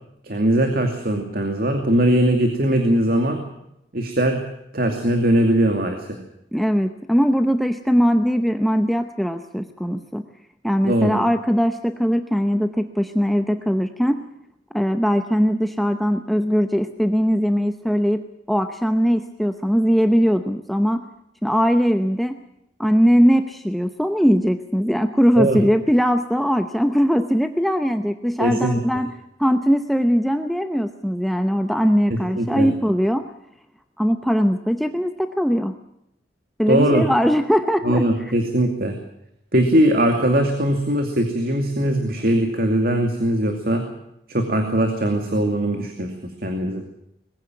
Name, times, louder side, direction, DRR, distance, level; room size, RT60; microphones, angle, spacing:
voice 1, 0.2-3.4 3.9-4.4 4.7-6.1 10.8-11.2 25.4-25.6 28.4-28.8 32.1-32.7 36.7-37.0 37.8-39.0 39.5-43.8 44.3-46.1 46.4-46.8, right 1 dB, 50° right, 5 dB, 2.6 m, -20 dB
voice 2, 6.5-10.2 10.6-14.2 14.7-18.2 18.5-21.1 21.4-22.4 22.8-29.1 29.4-33.3 34.0-35.8 36.6-38.1, equal, ahead, 7 dB, 0.8 m, -20 dB
21.0 x 15.5 x 9.2 m, 0.80 s
head